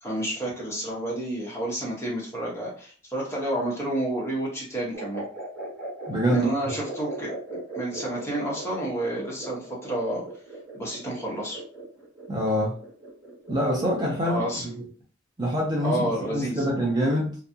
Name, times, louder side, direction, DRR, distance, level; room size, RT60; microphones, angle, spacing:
voice 1, 0.0-5.2 6.3-7.3 7.7-10.3 10.7-11.6 14.2-14.7 15.8-16.6, right 1 dB, 10° left, -4 dB, 0.8 m, -30 dB
sound 1, 4.9-14.5, right 2 dB, 5° right, 1.4 m, -39 dB
voice 2, 6.1-6.5 12.3-12.7 13.5-14.4 15.4-16.1 16.3-17.4, equal, 20° right, -3 dB, 0.5 m, -24 dB
2.7 x 2.3 x 2.6 m, 0.42 s
head